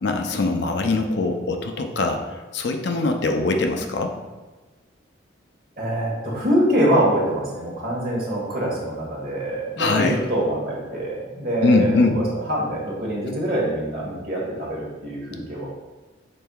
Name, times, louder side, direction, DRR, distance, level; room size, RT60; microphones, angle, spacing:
voice 1, 0.0-4.1 9.8-10.2 11.6-12.2, left 3 dB, 60° left, 5 dB, 0.4 m, -22 dB
voice 2, 5.8-12.2 12.5-15.7, right 1 dB, 50° right, -4 dB, 1.3 m, -24 dB
5.3 x 4.4 x 2.3 m, 1.2 s
head